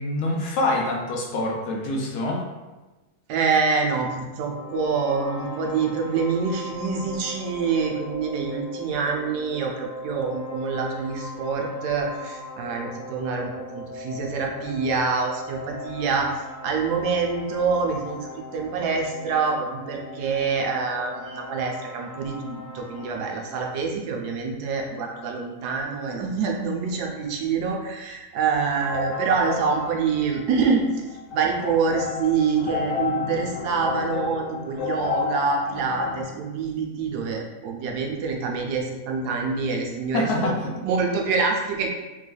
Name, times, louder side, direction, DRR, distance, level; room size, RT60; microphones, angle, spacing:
voice 1, 0.0-2.4 40.1-40.7, left 2 dB, 80° left, -1 dB, 1.2 m, -25 dB
voice 2, 3.3-16.3 16.6-30.8 31.3-40.5 40.8-41.9, right 5 dB, 85° right, 1 dB, 1.1 m, -26 dB
sound 1, 4.4-23.2, left 1 dB, 40° left, 0.6 m, -39 dB
sound 2, 28.6-30.5 31.1-36.2, left 5 dB, 60° left, 0.9 m, -31 dB
3.4 x 3.3 x 2.2 m, 1.1 s
omnidirectional pair, 1.7 m